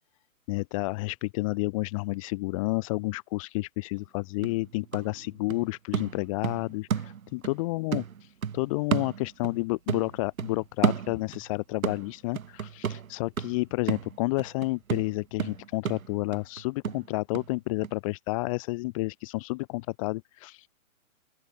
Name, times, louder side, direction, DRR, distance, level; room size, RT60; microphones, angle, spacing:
voice 1, 0.5-8.0 8.5-20.7, left 24 dB, 25° left, 0.9 m, -30 dB
sound 1, 4.0-4.1 4.4-7.6 7.9-9.6 9.9-11.5 11.8-17.5 17.8-17.9, right 7 dB, 80° right, 3.8 m, -32 dB
open air
hypercardioid pair, 150°, 41 cm